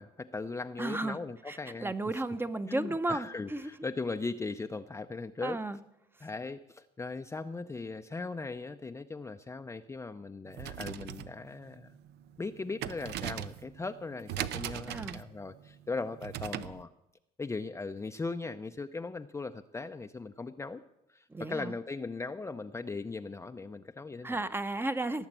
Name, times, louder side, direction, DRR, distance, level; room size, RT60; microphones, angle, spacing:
voice 1, 0.0-2.2 2.7-5.6 6.2-12.0 12.4-16.9 17.4-20.8 21.1-24.4, left 3 dB, 15° left, 7 dB, 0.6 m, -39 dB
voice 2, 0.8-1.2 1.5-3.7 5.4-5.8 14.9-15.2 21.3-21.7 24.2-25.3, right 2 dB, 15° right, 11 dB, 0.8 m, -34 dB
sound 1, 10.5-16.8, right 11 dB, 80° right, 0.7 m, -40 dB
18.0 x 7.1 x 8.9 m, 0.85 s
cardioid pair, 110°, 17 cm